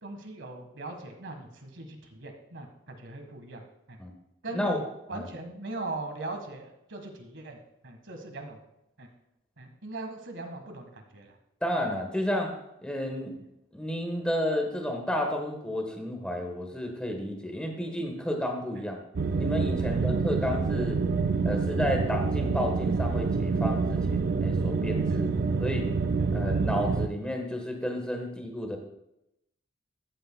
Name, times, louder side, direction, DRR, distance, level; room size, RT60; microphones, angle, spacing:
voice 1, 0.0-4.0 4.4-4.8 5.1-7.6 7.8-8.6 9.0-9.1 9.6-11.4 13.3-13.4 18.7-18.8 19.8-20.1 25.1-25.5, right 2 dB, 65° right, 5 dB, 1.5 m, -40 dB
voice 2, 11.6-12.5 12.8-13.3 13.7-19.0 19.3-21.0 21.4-25.3 25.6-25.9 26.3-28.8, left 1 dB, 5° left, 2 dB, 1.2 m, -31 dB
sound 1, 19.1-27.1, right 4 dB, 50° right, 0.4 m, -27 dB
13.5 x 8.5 x 2.2 m, 0.84 s
head